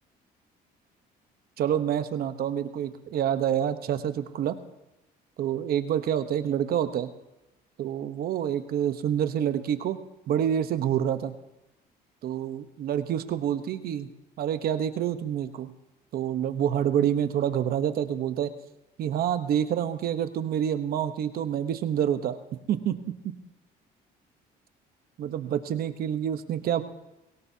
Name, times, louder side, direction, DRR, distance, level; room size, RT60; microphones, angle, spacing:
voice 1, 1.6-4.6 5.4-7.1 7.8-10.0 10.3-11.3 12.2-14.1 14.4-15.7 16.1-18.5 19.0-22.4 22.7-23.0 23.2-23.3 25.2-26.8, right 9 dB, 65° right, 9 dB, 1.0 m, -27 dB
23.5 x 17.0 x 2.8 m, 0.97 s
cardioid pair, 110°, 17 cm